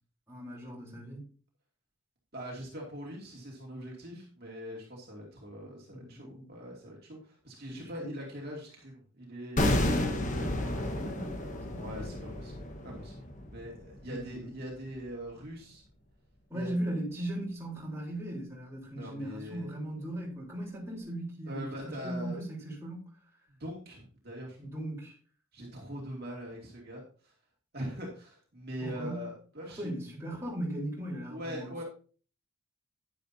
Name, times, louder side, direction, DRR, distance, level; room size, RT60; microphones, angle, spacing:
voice 1, 0.3-1.3 5.9-6.5 7.7-8.1 9.6-11.8 14.0-14.5 16.5-23.1 24.6-25.2 28.8-29.3 29.7-31.8, right 1 dB, 10° right, -4 dB, 3.7 m, -38 dB
voice 2, 2.3-9.6 11.7-13.2 13.5-15.8 16.5-16.7 18.9-19.7 21.5-22.4 23.6-24.6 25.5-27.3 27.7-29.9 31.3-31.8, equal, 45° right, -2 dB, 2.4 m, -42 dB
sound 1, 9.6-14.6 14.8-15.0, left 1 dB, 35° left, 1.3 m, -32 dB
10.5 x 10.0 x 2.7 m, 0.39 s
head